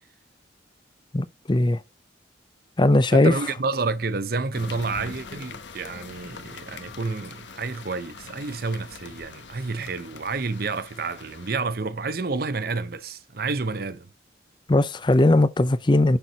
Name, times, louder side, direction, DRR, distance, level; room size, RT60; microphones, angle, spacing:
voice 1, 1.1-1.8 2.8-3.3 14.7-16.2, left 2 dB, 25° left, 0.5 m, -19 dB
voice 2, 3.1-14.1, right 4 dB, 50° right, 0.7 m, -29 dB
sound 1, 4.5-11.5, left 4 dB, 75° left, 0.9 m, -43 dB
6.8 x 5.9 x 4.0 m
head